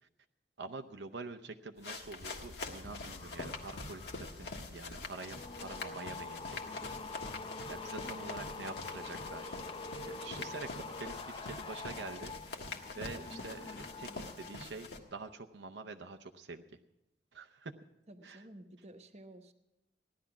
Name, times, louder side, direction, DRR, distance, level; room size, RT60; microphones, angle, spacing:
voice 1, 0.6-6.9 7.7-9.6 10.0-12.7 12.9-16.6 17.3-17.7 18.2-18.4, right 3 dB, 80° right, 6 dB, 0.7 m, -46 dB
sound 1, 1.8-15.0, left 3 dB, 70° left, 1.5 m, -45 dB
sound 2, 2.0-14.7 15.0-15.4, left 3 dB, 30° left, 0.5 m, -46 dB
voice 2, 18.1-19.5, right 1 dB, 40° right, 6 dB, 1.0 m, -53 dB
16.0 x 11.5 x 5.9 m, 0.89 s
head